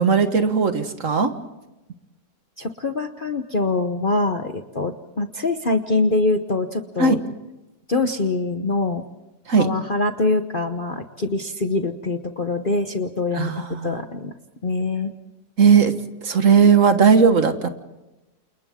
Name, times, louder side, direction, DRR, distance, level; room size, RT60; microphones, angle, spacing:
voice 1, 0.0-1.3 7.0-7.2 9.5-9.7 13.3-14.0 15.6-15.9 16.2-17.7, right 5 dB, 55° right, 8 dB, 1.7 m, -17 dB
voice 2, 2.6-7.2 7.9-9.0 9.6-13.5 13.8-14.3 14.6-15.1, left 3 dB, 35° left, 7 dB, 1.0 m, -24 dB
29.5 x 28.5 x 3.7 m, 0.98 s
omnidirectional pair, 1.7 m